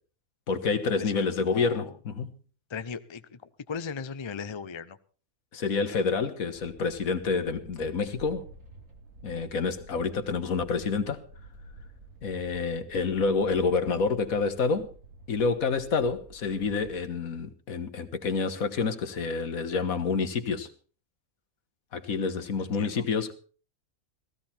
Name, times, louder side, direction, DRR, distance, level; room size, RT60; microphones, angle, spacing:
voice 1, 0.5-2.3 5.5-8.5 9.2-11.2 12.2-14.9 15.3-20.7 21.9-23.3, left 4 dB, 75° left, 1.7 m, -28 dB
voice 2, 1.0-1.9 2.7-3.4 3.7-5.0 22.6-23.0, left 6 dB, 35° left, 0.4 m, -37 dB
sound 1, 6.5-16.9, right 2 dB, 60° right, 2.9 m, -50 dB
16.0 x 15.5 x 4.3 m
omnidirectional pair, 1.5 m